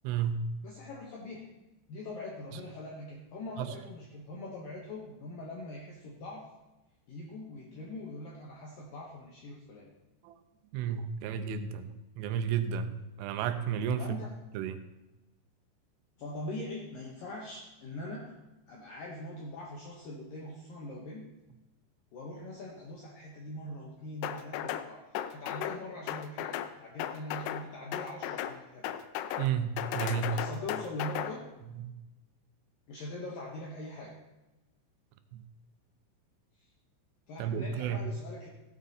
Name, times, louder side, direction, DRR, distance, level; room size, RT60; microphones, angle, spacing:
voice 1, 0.0-0.5 3.6-3.7 10.2-10.3 10.7-14.1 14.5-14.8 29.4-30.3 31.8-32.0 35.3-35.4 37.4-38.0, right 7 dB, 80° right, 8 dB, 3.2 m, -32 dB
voice 2, 0.6-1.5 1.9-6.5 7.1-9.9 14.0-14.3 16.2-18.4 18.7-21.3 22.1-26.5 26.8-28.8 30.3-31.4 32.9-34.2 36.6-36.7 37.3-38.5, left 1 dB, 70° left, -2 dB, 2.2 m, -42 dB
sound 1, 24.2-24.9 25.2-25.8 26.1-26.7 27.0-27.6 27.9-28.6 28.8-29.5 29.8-31.3, left 11 dB, 85° left, 3.4 m, -35 dB
17.0 x 8.4 x 4.2 m, 1.0 s
omnidirectional pair, 5.9 m